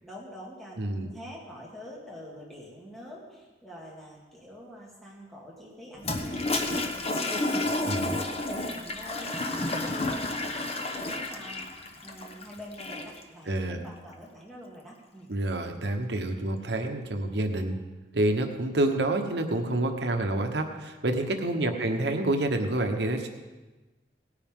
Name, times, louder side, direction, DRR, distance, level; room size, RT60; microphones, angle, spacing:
voice 1, 0.0-7.6 7.8-15.3 21.6-22.0, left 1 dB, ahead, -5 dB, 2.1 m, -46 dB
voice 2, 0.8-1.1 7.9-8.2 13.5-13.8 15.3-17.8 18.1-23.3, right 1 dB, 75° right, 5 dB, 1.1 m, -28 dB
Toilet flush, 6.0-13.2, left 2 dB, 35° left, 1.1 m, -31 dB
18.5 x 9.7 x 3.7 m, 1.2 s
head